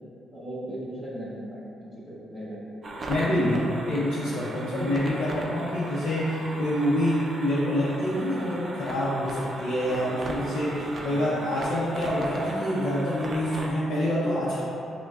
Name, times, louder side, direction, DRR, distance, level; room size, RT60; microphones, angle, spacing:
voice 1, 0.3-2.7 11.0-11.2, right 1 dB, 5° left, -10 dB, 1.5 m, -38 dB
sound 1, 2.8-13.7, right 1 dB, 45° right, 0.4 m, -37 dB
voice 2, 3.1-14.6, equal, 70° left, -9 dB, 0.7 m, -26 dB
5.7 x 2.2 x 2.4 m, 2.7 s
cardioid pair, 90°, 0 cm